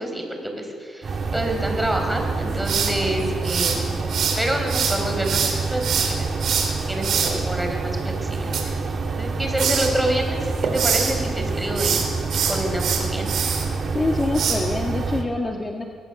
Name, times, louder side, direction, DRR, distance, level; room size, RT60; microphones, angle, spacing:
voice 1, 0.0-6.3 6.9-8.8 9.2-12.0 12.3-13.3, right 1 dB, 5° right, 3 dB, 4.7 m, -28 dB
sound 1, 1.0-15.2, right 4 dB, 45° right, 2.3 m, -27 dB
sound 2, 2.6-4.4 4.7-7.3 8.3-9.3 9.6-9.9 10.3-11.1 11.7-13.6 14.3-14.5, right 7 dB, 70° right, 4.1 m, -24 dB
voice 2, 13.9-15.8, left 2 dB, 25° left, 2 dB, 1.7 m, -25 dB
22.0 x 17.5 x 7.0 m, 2.2 s
cardioid pair, 90°, 0 cm